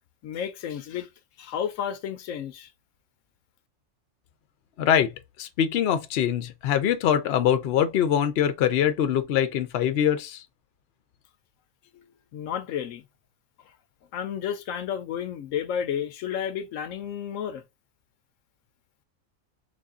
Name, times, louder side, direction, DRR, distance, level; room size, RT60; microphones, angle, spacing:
voice 1, 0.2-1.1 1.4-2.7 11.9-13.0 14.1-17.6, left 8 dB, 90° left, 1.0 m, -32 dB
voice 2, 4.8-5.1 5.4-10.4, left 9 dB, 65° left, 0.8 m, -23 dB
3.5 x 2.6 x 3.6 m
omnidirectional pair, 1.3 m